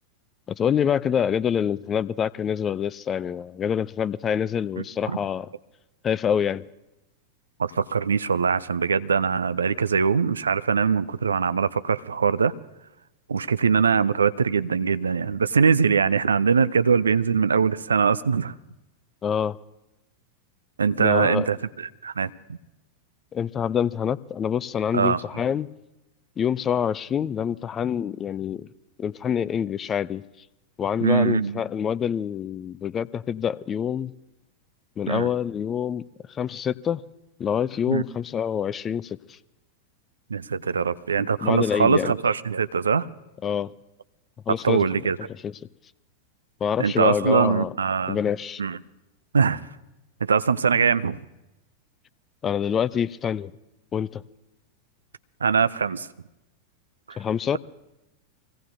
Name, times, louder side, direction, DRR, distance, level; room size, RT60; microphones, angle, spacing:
voice 1, 0.5-5.5 6.0-6.7 19.2-19.6 21.0-21.5 23.3-25.7 26.4-28.7 29.0-30.2 30.8-34.1 35.0-36.0 36.3-37.0 37.4-39.4 41.4-42.1 43.4-43.7 44.5-44.8 45.4-45.6 46.6-47.7 48.1-48.6 52.4-53.5 53.9-54.2 57.2-57.6, left 8 dB, 25° left, 0.4 m, -26 dB
voice 2, 7.6-12.5 13.3-18.5 20.8-22.6 24.9-25.2 31.0-31.6 35.1-35.3 37.9-38.0 40.3-43.1 44.6-45.2 46.8-48.2 48.6-48.8 49.3-49.7 50.2-51.2 55.4-56.1 57.1-57.2, right 6 dB, 70° right, 0.4 m, -22 dB
25.0 x 17.0 x 2.7 m
figure-of-eight pair, 90°, 0 cm